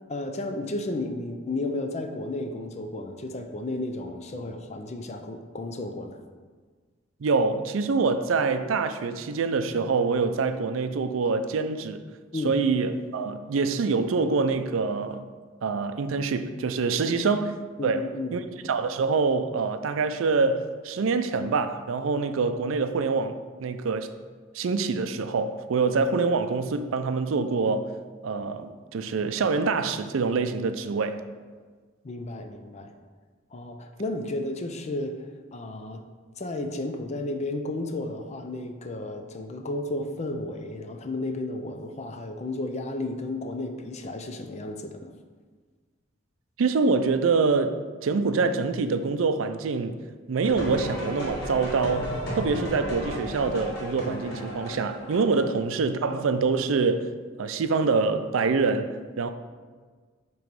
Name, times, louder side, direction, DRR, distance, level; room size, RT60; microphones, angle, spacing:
voice 1, 0.1-6.2 12.3-12.6 17.1-17.2 17.8-18.4 32.0-32.9 33.5-35.2 35.5-36.0 36.4-45.1, left 2 dB, 35° left, 0.5 m, -33 dB
voice 2, 7.2-12.0 12.4-15.2 15.6-17.6 17.8-24.1 24.5-27.9 28.2-31.2 46.6-50.0 50.3-57.1 57.4-59.3, right 4 dB, 85° right, 0.4 m, -25 dB
sound 1, 50.4-55.6, equal, 55° left, 1.6 m, -34 dB
7.6 x 3.1 x 5.2 m
head